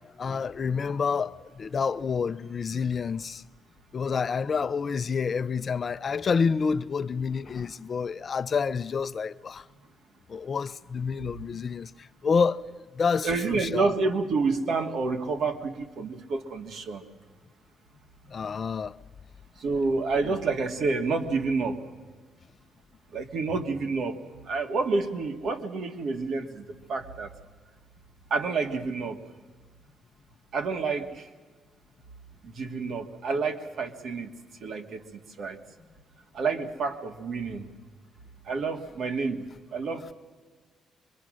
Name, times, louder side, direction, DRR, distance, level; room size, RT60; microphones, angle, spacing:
voice 1, 0.2-3.4 3.9-9.6 10.3-12.6 12.9-13.9 18.3-19.0, left 5 dB, 45° left, 0.7 m, -28 dB
voice 2, 13.2-17.0 19.6-21.8 23.1-24.2 24.4-27.3 28.3-29.2 30.5-31.3 32.4-34.3 34.6-35.6 36.3-37.7 38.4-39.5 39.7-40.1, right 4 dB, 65° right, 2.0 m, -29 dB
25.5 x 22.5 x 6.4 m
cardioid pair, 90°, 0 cm